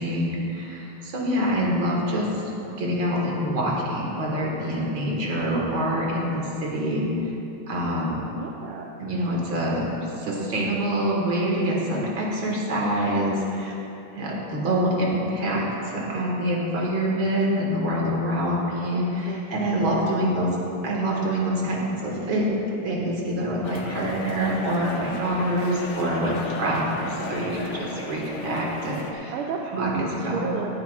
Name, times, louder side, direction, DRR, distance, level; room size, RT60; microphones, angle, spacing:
voice 1, 0.0-2.3 2.8-7.1 7.7-8.2 9.0-9.9 10.2-13.8 14.1-20.5 20.8-22.4 22.8-29.3 29.7-30.5, equal, 65° right, -3 dB, 2.6 m, -26 dB
voice 2, 8.3-8.9 18.9-19.4 19.7-20.1 28.8-29.1 29.3-30.8, right 5 dB, 85° right, 0 dB, 1.6 m, -33 dB
sound 1, 23.6-29.1, left 2 dB, 70° left, 0.6 m, -35 dB
17.5 x 11.5 x 2.5 m, 3.0 s
omnidirectional pair, 2.3 m